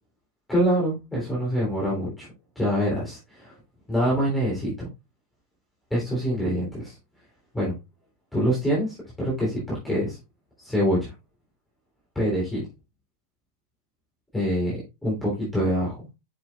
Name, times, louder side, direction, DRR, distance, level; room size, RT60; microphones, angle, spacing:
voice 1, 0.5-2.3 2.6-3.5 3.9-4.9 5.9-7.0 7.5-7.8 8.3-10.2 10.6-11.1 12.2-12.6 14.3-14.8 15.0-16.1, equal, 5° left, -6 dB, 3.5 m, -25 dB
7.3 x 6.8 x 2.4 m, 0.24 s
figure-of-eight pair, 90°, 0 cm